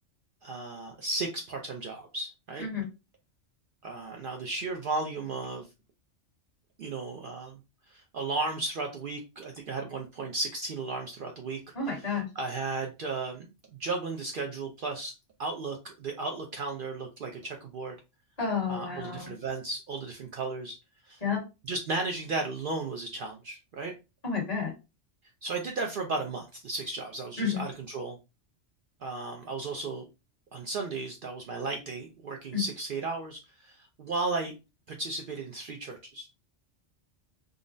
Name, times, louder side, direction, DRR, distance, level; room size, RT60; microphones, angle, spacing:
voice 1, 0.4-2.7 3.8-5.7 6.8-7.6 7.9-13.5 13.8-15.1 15.4-17.9 18.7-20.8 21.0-21.2 21.6-23.9 25.4-28.2 29.0-30.1 30.5-34.5 34.9-36.3, right 3 dB, 60° right, 2 dB, 0.6 m, -35 dB
voice 2, 11.7-12.2 18.4-19.3 21.2-21.4 24.2-24.7 27.4-27.6 32.5-32.6, left 5 dB, 30° left, -2 dB, 1.4 m, -30 dB
3.7 x 2.0 x 2.5 m, 0.27 s
omnidirectional pair, 1.2 m